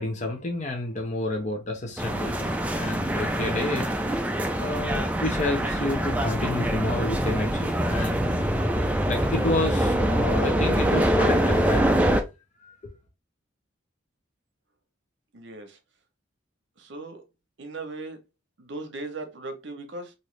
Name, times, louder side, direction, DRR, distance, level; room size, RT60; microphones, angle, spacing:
voice 1, 0.0-3.9 4.6-8.6 9.1-11.9 12.6-12.9, left 2 dB, 35° left, 0.6 m, -30 dB
sound 1, 2.0-12.2, right 1 dB, 5° right, 0.3 m, -24 dB
sound 2, 4.7-11.6, right 1 dB, 70° left, 1.1 m, -36 dB
voice 2, 15.3-15.8 16.8-17.2 17.6-18.2 18.6-20.1, right 2 dB, 65° right, 0.8 m, -38 dB
3.0 x 2.7 x 3.1 m
head